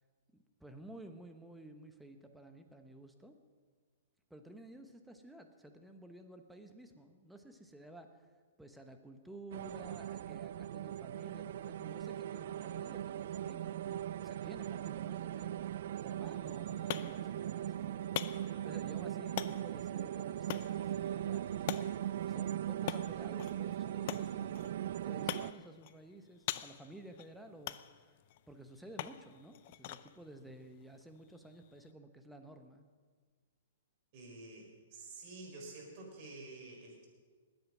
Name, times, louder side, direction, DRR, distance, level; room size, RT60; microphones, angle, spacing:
voice 1, 0.3-3.4 4.3-8.2 8.6-15.5 16.0-18.1 18.6-21.8 22.3-24.6 25.0-28.2 28.5-32.8, right 1 dB, 5° right, 6 dB, 1.1 m, -53 dB
sound 1, 9.5-25.5, right 11 dB, 60° right, 0.3 m, -39 dB
sound 2, 16.3-31.9, left 13 dB, 45° left, 0.6 m, -46 dB
voice 2, 34.1-37.1, right 2 dB, 45° right, -1 dB, 4.8 m, -49 dB
19.5 x 8.9 x 6.2 m, 1.5 s
hypercardioid pair, 145°, 0 cm